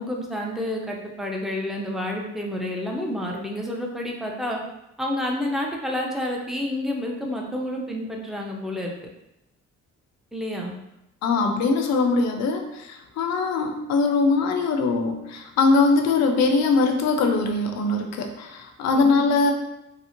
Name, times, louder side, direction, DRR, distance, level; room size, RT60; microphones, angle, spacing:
voice 1, 0.0-4.6 5.0-8.9 10.3-10.8 18.9-19.3, left 1 dB, ahead, -1 dB, 0.4 m, -29 dB
voice 2, 11.2-19.5, left 3 dB, 65° left, 4 dB, 0.5 m, -22 dB
2.8 x 2.0 x 2.5 m, 0.88 s
cardioid pair, 90°, 30 cm